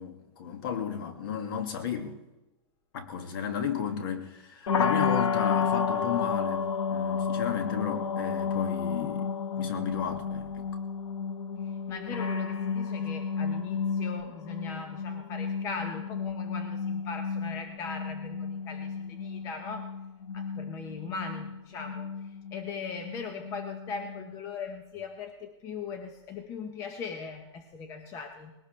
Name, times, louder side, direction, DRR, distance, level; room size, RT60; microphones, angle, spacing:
voice 1, 0.0-2.2 2.9-9.3 9.6-10.7, left 8 dB, 50° left, 2.0 m, -33 dB
sound 1, 4.7-24.5, left 6 dB, 75° left, 1.4 m, -32 dB
voice 2, 11.6-20.0 20.3-28.5, left 5 dB, 20° left, 0.9 m, -40 dB
20.5 x 17.5 x 3.3 m
supercardioid pair, 170°, 16 cm